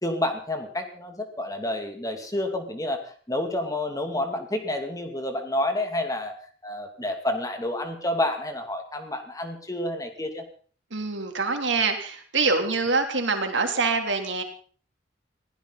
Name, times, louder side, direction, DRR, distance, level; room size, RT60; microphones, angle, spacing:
voice 1, 0.0-3.0 3.3-6.3 6.6-10.4, left 1 dB, 20° left, 5 dB, 2.6 m, -29 dB
voice 2, 10.9-14.4, right 4 dB, 80° right, 5 dB, 3.2 m, -25 dB
21.5 x 16.0 x 4.1 m, 0.43 s
head